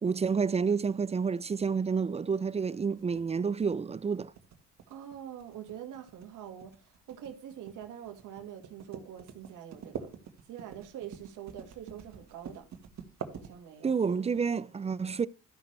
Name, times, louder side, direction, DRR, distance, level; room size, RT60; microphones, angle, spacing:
voice 1, 0.0-4.3 13.8-15.3, right 5 dB, 20° right, 0.4 m, -29 dB
sound 1, 3.0-14.0, right 7 dB, 65° right, 1.7 m, -46 dB
voice 2, 4.9-10.2 10.5-12.7 13.3-13.9, right 10 dB, 85° right, 1.7 m, -45 dB
13.5 x 5.9 x 3.2 m
cardioid pair, 90°, 30 cm